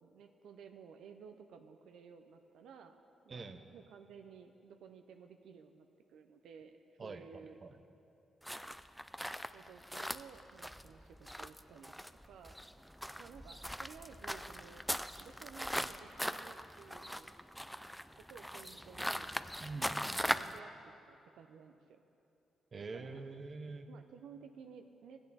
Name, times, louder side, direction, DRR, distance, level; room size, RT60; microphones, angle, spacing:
voice 1, 0.0-3.0 3.2-7.6 9.5-11.9 12.2-12.6 13.2-14.8 15.2-17.3 18.3-19.3 20.1-20.7 21.1-22.0 22.9-23.2 23.9-25.2, right 6 dB, 85° right, 6 dB, 0.5 m, -55 dB
voice 2, 3.3-3.7 7.0-7.7 19.6-20.4 22.7-23.9, right 3 dB, 45° right, 8 dB, 0.7 m, -46 dB
sound 1, 8.4-20.6, equal, ahead, 0.4 m, -40 dB
15.0 x 8.8 x 4.1 m, 2.8 s
cardioid pair, 75°, 0 cm